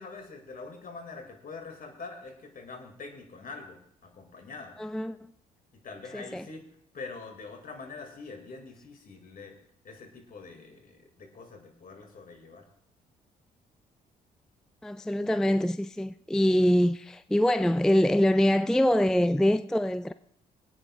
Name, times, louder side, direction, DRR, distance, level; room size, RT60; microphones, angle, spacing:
voice 1, 0.0-4.8 5.7-6.7 6.9-9.5 9.8-12.7, left 4 dB, 50° left, 2.3 m, -44 dB
voice 2, 4.8-5.2 6.1-6.5 14.8-20.1, equal, 5° left, 0.3 m, -24 dB
21.0 x 8.9 x 2.4 m
hypercardioid pair, 50°, 19 cm